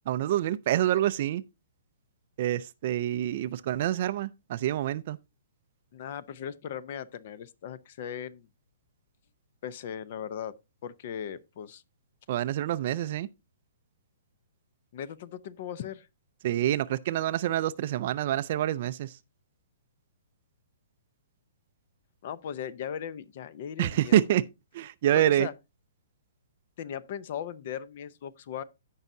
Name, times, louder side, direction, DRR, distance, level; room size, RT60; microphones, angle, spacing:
voice 1, 0.1-1.4 2.4-5.2 12.3-13.3 16.4-19.1 23.8-24.4 24.7-25.5, right 12 dB, 40° right, 0.4 m, -27 dB
voice 2, 5.9-8.5 9.6-11.8 14.9-16.1 22.2-24.2 25.1-25.5 26.8-28.6, left 9 dB, 40° left, 0.6 m, -38 dB
16.5 x 5.5 x 2.7 m
hypercardioid pair, 170°, 0 cm